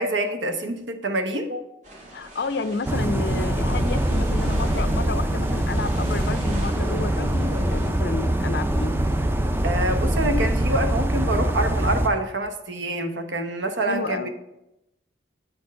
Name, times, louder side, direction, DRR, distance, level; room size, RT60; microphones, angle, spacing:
voice 1, 0.0-1.6 9.6-14.3, right 1 dB, 75° right, 7 dB, 0.9 m, -26 dB
sound 1, 1.8-7.9, right 1 dB, 40° right, 1.7 m, -43 dB
voice 2, 2.1-9.0 13.8-14.3, left 3 dB, 60° left, 12 dB, 0.4 m, -30 dB
sound 2, 2.9-12.1, right 1 dB, 10° right, 0.4 m, -23 dB
8.8 x 4.3 x 5.3 m, 0.91 s
head